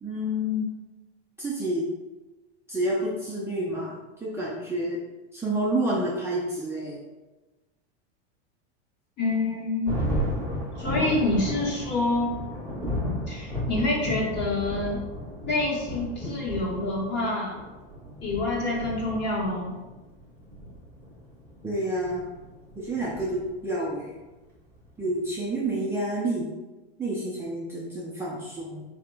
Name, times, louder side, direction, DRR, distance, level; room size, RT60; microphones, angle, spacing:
voice 1, 0.0-0.7 1.4-1.9 2.7-3.9 4.2-5.0 5.3-7.0 21.6-22.2 22.8-24.1 25.0-26.5 27.0-28.8, right 1 dB, 10° right, -7 dB, 0.5 m, -29 dB
voice 2, 9.2-10.0 10.8-12.4 13.3-15.0 15.4-17.6 18.2-19.7, left 2 dB, 35° left, -3 dB, 1.3 m, -27 dB
Thunder, 9.9-23.8, equal, 5° left, 1.1 m, -34 dB
4.2 x 2.9 x 3.4 m, 1.2 s
supercardioid pair, 130°, 32 cm